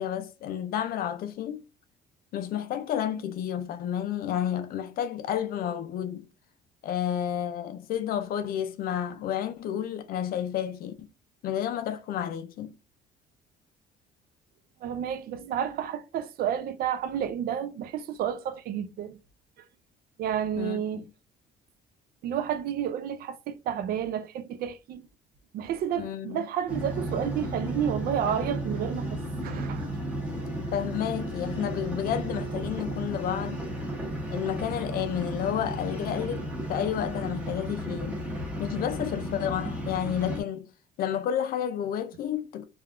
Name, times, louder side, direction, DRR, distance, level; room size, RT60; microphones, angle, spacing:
voice 1, 0.0-1.6 2.3-6.3 6.8-11.1 11.4-12.7 20.6-21.1 26.0-26.4 30.7-33.6 34.3-38.2 38.6-40.7 41.0-42.7, left 10 dB, 60° left, 0.4 m, -31 dB
voice 2, 14.8-19.2 20.2-21.0 22.2-25.1 25.5-29.9, right 9 dB, 65° right, 0.4 m, -31 dB
sound 1, 26.7-40.4, right 1 dB, 10° right, 1.0 m, -33 dB
3.3 x 2.3 x 2.4 m
cardioid pair, 110°, 17 cm